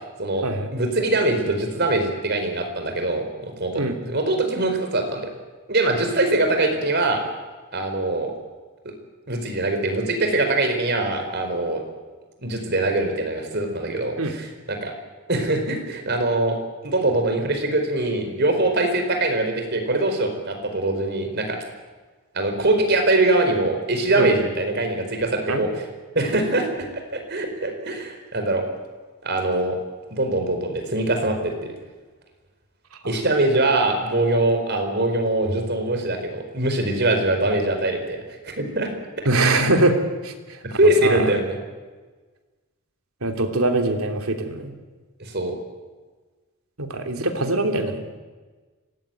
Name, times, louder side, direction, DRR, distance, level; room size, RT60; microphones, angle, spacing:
voice 1, 0.7-5.3 5.7-7.2 7.7-8.3 9.3-11.8 12.4-14.9 15.3-16.6 16.8-21.6 22.3-25.8 26.1-26.7 27.1-28.6 29.2-29.8 30.1-31.7 33.1-38.9 40.6-41.6 45.2-45.5, right 2 dB, 50° right, 5 dB, 4.7 m, -23 dB
voice 2, 39.2-40.0 40.2-40.3 41.0-41.3 43.2-44.7 46.8-48.1, right 2 dB, 80° right, 5 dB, 3.1 m, -22 dB
25.0 x 18.5 x 9.2 m, 1.3 s
head